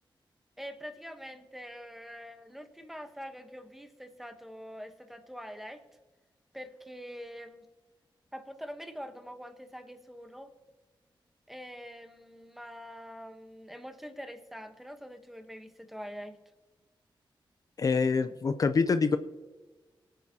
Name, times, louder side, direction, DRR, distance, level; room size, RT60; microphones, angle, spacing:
voice 1, 0.6-5.8 6.5-7.6 8.3-10.5 11.5-16.4, equal, 5° right, 7 dB, 1.0 m, -44 dB
voice 2, 17.8-19.2, left 4 dB, 45° left, 10 dB, 0.5 m, -25 dB
22.5 x 8.8 x 2.8 m, 1.2 s
wide cardioid pair, 155°, 9 cm